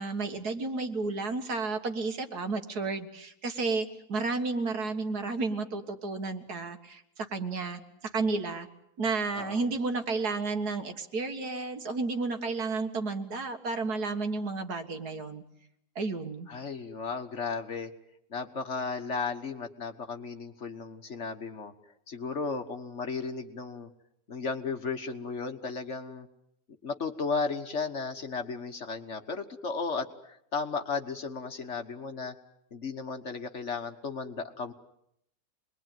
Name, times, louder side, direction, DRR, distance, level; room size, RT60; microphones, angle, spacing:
voice 1, 0.0-8.7 9.0-15.4 16.0-16.5, right 3 dB, 65° right, 7 dB, 2.2 m, -32 dB
voice 2, 16.5-17.9 18.3-21.7 22.1-23.9 24.3-26.3 26.8-32.3 32.7-34.7, left 4 dB, 45° left, 7 dB, 1.6 m, -35 dB
27.0 x 21.5 x 9.2 m, 0.75 s
omnidirectional pair, 1.8 m